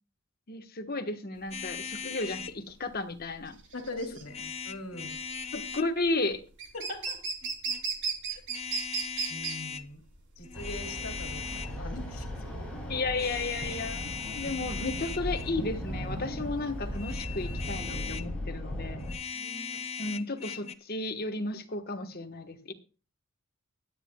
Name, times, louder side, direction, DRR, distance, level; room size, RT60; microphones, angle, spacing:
voice 1, 0.5-3.6 5.5-6.4 12.9-19.0 20.0-22.7, left 2 dB, 45° left, 7 dB, 1.2 m, -33 dB
sound 1, 1.4-17.8, right 5 dB, 55° right, 3.3 m, -37 dB
sound 2, 1.5-2.6 4.3-5.9 7.4-7.8 8.5-9.9 10.4-11.8 13.1-15.6 16.9-18.3 19.0-20.7, left 6 dB, 30° left, 0.7 m, -39 dB
voice 2, 3.7-5.1 6.7-7.2 8.3-8.4 9.3-10.0 10.4-12.3 12.5-12.7 19.3-19.8, left 1 dB, 75° left, 3 dB, 2.3 m, -41 dB
sound 3, 10.5-19.1, equal, 5° left, 5.9 m, -37 dB
24.5 x 9.5 x 2.2 m, 0.36 s
head